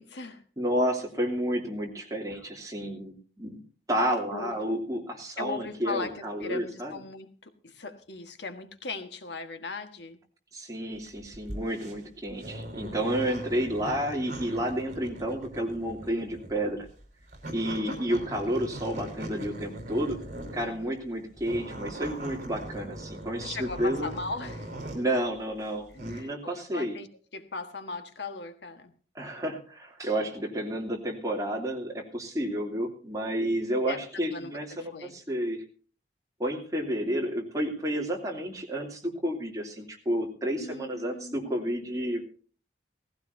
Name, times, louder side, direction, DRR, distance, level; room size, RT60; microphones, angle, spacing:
voice 1, 0.0-0.4 2.3-2.4 4.3-4.5 5.4-10.2 20.6-21.0 23.4-24.8 25.9-27.1 27.3-28.9 30.2-30.3 33.8-35.1 40.6-41.9, left 3 dB, 85° left, 8 dB, 1.5 m, -39 dB
voice 2, 0.6-3.6 3.9-7.0 10.5-16.9 17.5-20.2 20.5-24.1 24.9-27.0 29.1-35.6 36.4-42.3, equal, 20° right, 0 dB, 2.8 m, -31 dB
sound 1, 11.0-20.8 21.3-25.2 25.6-26.2, right 1 dB, 45° right, 4.5 m, -40 dB
18.0 x 15.5 x 2.7 m, 0.40 s
head